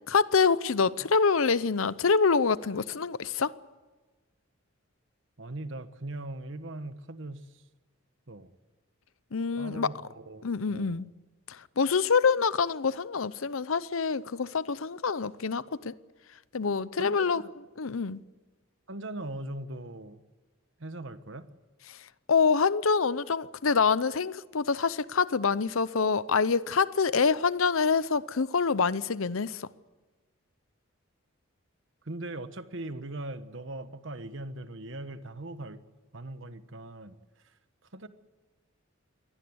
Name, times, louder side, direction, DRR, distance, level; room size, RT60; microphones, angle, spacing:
voice 1, 0.1-3.5 9.3-9.9 10.4-11.0 11.5-15.9 16.5-17.4 17.8-18.2 21.9-22.0 22.3-29.7, left 5 dB, 75° left, 0.7 m, -26 dB
voice 2, 5.4-7.6 8.3-8.5 9.6-11.0 17.0-17.5 18.9-20.2 20.8-21.5 32.0-35.8 36.1-37.2 37.4-37.5 37.9-38.1, right 2 dB, 60° right, 1.3 m, -40 dB
23.0 x 18.0 x 8.0 m
head